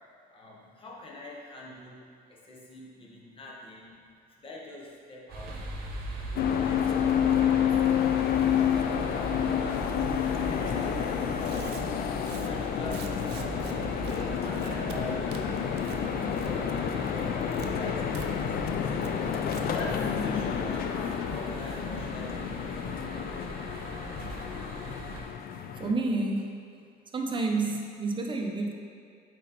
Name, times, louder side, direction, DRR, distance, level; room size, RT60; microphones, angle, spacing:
voice 1, 0.3-4.1 4.4-5.6 6.2-8.1 8.6-15.8 16.2-17.3 17.7-22.5, left 1 dB, 30° left, -3 dB, 1.2 m, -44 dB
sound 1, 5.3-25.2, right 3 dB, 65° right, 1.1 m, -40 dB
sound 2, 6.4-25.9, left 8 dB, 65° left, 0.5 m, -29 dB
Tearing, 10.6-10.8 11.3-13.7 14.0-14.2 14.5-15.0 15.3-16.0 16.3-16.7 17.0-17.7 18.1-18.3 18.5-18.6 19.0-19.1 19.4-19.6, right 7 dB, 80° right, 0.6 m, -46 dB
voice 2, 25.7-26.6 27.1-28.7, right 3 dB, 30° right, 2 dB, 0.7 m, -29 dB
8.1 x 4.2 x 4.4 m, 2.2 s
cardioid pair, 135°, 17 cm